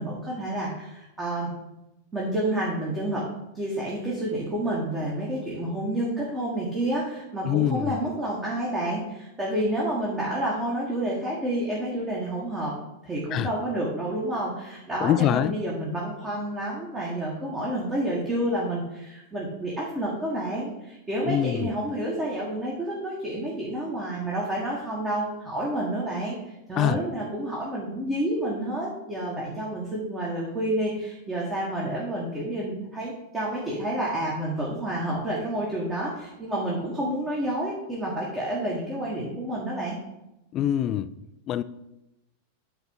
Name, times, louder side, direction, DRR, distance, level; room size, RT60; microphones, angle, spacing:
voice 1, 0.0-1.5 2.1-3.3 3.5-12.8 13.0-26.4 26.7-40.0, right 1 dB, 15° right, 1.7 m, -29 dB
voice 2, 7.4-8.0 13.3-13.5 15.0-15.6 21.3-21.7 26.8-27.0 40.5-41.1 41.5-41.6, left 11 dB, 35° left, 0.4 m, -24 dB
9.1 x 3.4 x 5.6 m
figure-of-eight pair, 90°, 0 cm